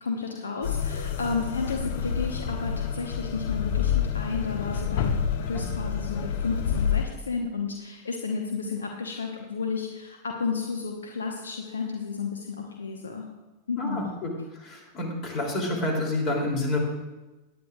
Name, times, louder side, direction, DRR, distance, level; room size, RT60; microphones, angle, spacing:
voice 1, 0.0-13.3 13.7-14.1, left 4 dB, 70° left, 2 dB, 1.2 m, -32 dB
sound 1, 0.6-7.1, left 8 dB, 50° left, 0.7 m, -28 dB
voice 2, 13.8-16.8, left 2 dB, 35° left, 0 dB, 3.3 m, -29 dB
18.5 x 10.0 x 2.5 m, 1.1 s
figure-of-eight pair, 90°, 0 cm